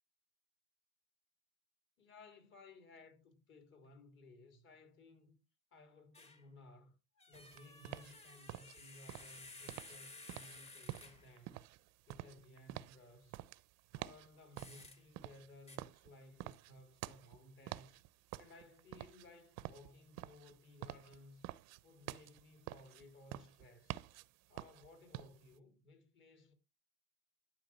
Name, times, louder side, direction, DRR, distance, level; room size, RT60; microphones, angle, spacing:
voice 1, 2.0-5.4 5.7-7.0 7.3-11.6 12.1-13.4 13.9-18.0 18.4-21.5 21.8-24.1 24.5-26.5, left 2 dB, 40° left, 3.6 m, -59 dB
sound 1, 6.1-6.4 7.2-11.4 14.6-15.0 15.7-15.8, left 3 dB, 20° left, 1.7 m, -55 dB
sound 2, 7.3-25.6, right 16 dB, 55° right, 0.7 m, -49 dB
12.5 x 4.8 x 7.4 m
cardioid pair, 145°, 31 cm